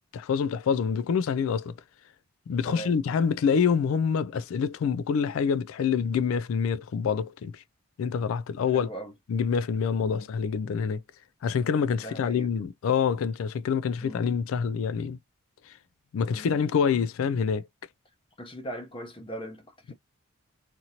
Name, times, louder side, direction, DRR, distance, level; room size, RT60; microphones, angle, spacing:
voice 1, 0.1-1.7 2.5-7.6 8.0-8.9 9.3-11.0 11.4-15.2 16.1-17.7 19.9-20.0, left 6 dB, 80° left, 0.3 m, -26 dB
voice 2, 8.6-9.1 10.0-10.3 12.0-12.5 14.0-14.3 16.3-16.6 18.4-19.9, right 1 dB, 25° left, 0.8 m, -40 dB
2.8 x 2.5 x 2.8 m
head